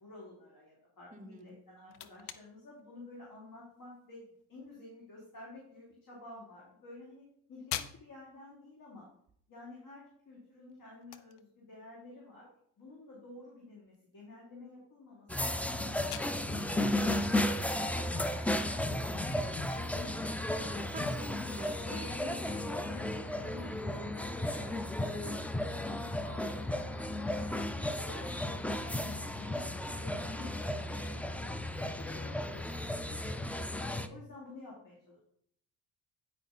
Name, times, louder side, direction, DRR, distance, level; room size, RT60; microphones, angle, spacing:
voice 1, 0.0-9.1 9.5-12.5 12.8-16.3 17.4-20.9 21.3-21.5 21.9-24.8 25.2-25.4 25.7-27.6 27.8-31.7 32.0-33.4 33.9-35.2, left 2 dB, 45° left, -4 dB, 3.0 m, -51 dB
voice 2, 1.1-1.5 17.2-17.7 20.9-22.1 22.5-22.8 24.7-25.1, right 3 dB, 15° right, 11 dB, 0.7 m, -49 dB
sound 1, 1.4-19.0, left 12 dB, 80° left, 0.8 m, -50 dB
sound 2, 15.3-34.1, left 1 dB, 5° left, 0.3 m, -34 dB
9.2 x 5.1 x 4.1 m, 0.66 s
supercardioid pair, 80°, 45 cm